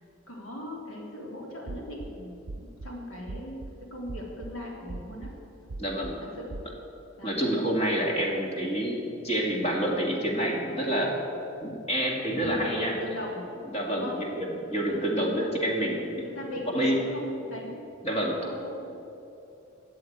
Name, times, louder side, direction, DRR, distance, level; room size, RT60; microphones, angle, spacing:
voice 1, 0.3-5.3 6.2-6.5 7.2-7.4 12.3-13.4 13.9-14.2 14.8-15.5 16.2-17.9 18.4-18.8, equal, 85° left, -2 dB, 3.2 m, -39 dB
sound 1, 1.7-2.1 2.5-2.9 3.3-3.7 4.1-4.5 4.9-5.3 5.7-6.1 6.5-6.7, right 2 dB, 85° right, 0.6 m, -39 dB
voice 2, 5.8-6.2 7.2-11.2 11.6-12.9 13.7-16.2 16.7-17.0 18.0-18.3, right 1 dB, 30° left, -1 dB, 2.1 m, -28 dB
13.0 x 7.6 x 9.4 m, 2.8 s
head